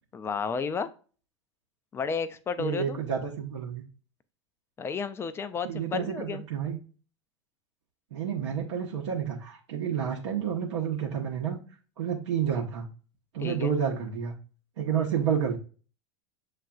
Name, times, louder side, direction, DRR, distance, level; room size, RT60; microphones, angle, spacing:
voice 1, 0.1-0.9 1.9-3.0 4.8-6.4 13.4-13.7, left 5 dB, 15° left, 13 dB, 0.3 m, -32 dB
voice 2, 2.6-3.8 5.6-6.8 8.1-11.6 12.0-12.9 13.3-14.3 14.8-15.6, right 8 dB, 65° right, -2 dB, 0.8 m, -30 dB
7.3 x 2.4 x 2.3 m, 0.38 s
figure-of-eight pair, 90°, 16 cm